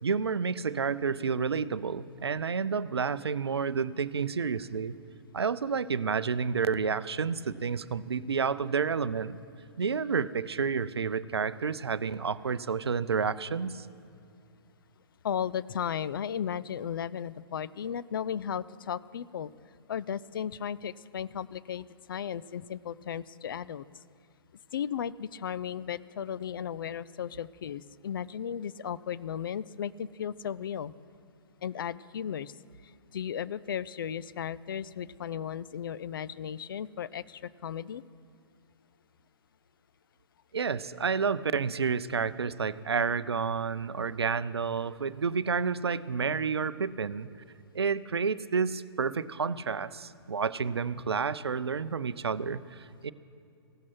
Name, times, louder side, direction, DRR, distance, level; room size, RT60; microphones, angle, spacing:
voice 1, 0.0-4.9 5.3-9.4 9.8-13.9 40.5-47.3 47.7-53.1, right 5 dB, 75° right, 16 dB, 0.5 m, -30 dB
voice 2, 15.2-19.5 19.9-23.9 24.7-30.9 31.6-32.5 33.1-38.0, left 8 dB, 55° left, 17 dB, 0.4 m, -35 dB
15.5 x 12.0 x 5.9 m, 2.6 s
figure-of-eight pair, 120°, 14 cm